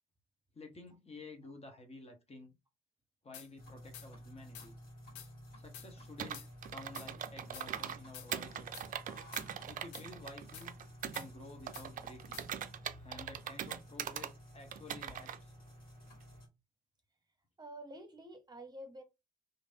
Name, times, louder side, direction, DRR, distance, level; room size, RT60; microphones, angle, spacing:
voice 1, 0.5-2.5 3.2-4.8 5.6-8.8 9.7-10.8 11.0-12.4 13.0-15.5, left 3 dB, 35° left, 1.0 m, -52 dB
sound 1, 3.3-3.5 3.9-4.1 4.5-4.7 5.2-5.3 5.7-5.9 6.3-6.5 6.9-7.1 7.5-7.7 8.1-8.3 8.7-8.9 9.3-9.5 9.9-10.1 10.5-10.7 11.1-11.3 11.7-11.9 12.3-12.5, left 9 dB, 75° left, 0.5 m, -49 dB
sound 2, 3.6-16.5, equal, 55° left, 1.9 m, -53 dB
Computer keyboard, 6.2-8.0 8.3-11.3 11.7-14.3 14.7-15.4, right 9 dB, 50° right, 0.4 m, -41 dB
voice 2, 17.6-19.0, right 1 dB, 20° right, 0.9 m, -49 dB
3.1 x 2.6 x 2.6 m
hypercardioid pair, 40°, 18 cm